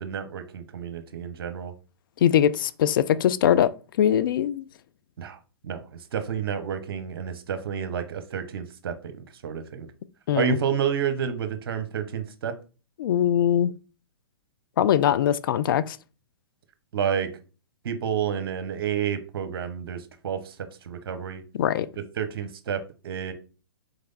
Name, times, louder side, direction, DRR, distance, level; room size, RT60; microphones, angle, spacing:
voice 1, 0.0-1.7 5.2-5.4 5.6-9.9 10.3-12.6 16.9-17.3 17.8-21.4 22.2-23.3, right 8 dB, 65° right, 0.9 m, -30 dB
voice 2, 2.2-3.7 4.0-4.6 10.3-10.6 13.0-13.7 14.8-16.0 21.6-21.9, left 10 dB, 55° left, 0.4 m, -21 dB
4.0 x 3.3 x 3.9 m
hypercardioid pair, 125°, 13 cm